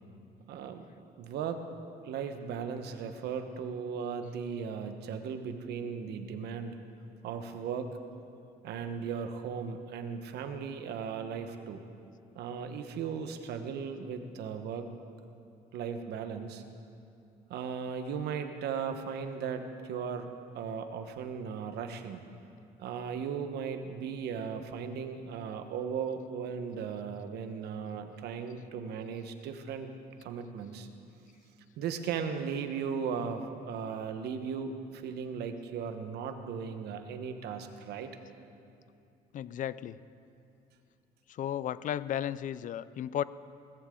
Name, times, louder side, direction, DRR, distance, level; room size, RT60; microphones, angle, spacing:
voice 1, 0.5-0.8 1.2-1.6 2.0-6.8 7.2-7.9 8.6-11.8 12.3-14.9 15.7-16.6 17.5-20.3 20.5-22.2 22.8-29.9 30.2-30.9 31.8-38.1, right 6 dB, 75° right, 7 dB, 1.2 m, -37 dB
voice 2, 39.3-40.0 41.3-43.2, left 10 dB, 50° left, 17 dB, 0.5 m, -34 dB
19.0 x 15.0 x 3.8 m, 2.6 s
cardioid pair, 110°, 17 cm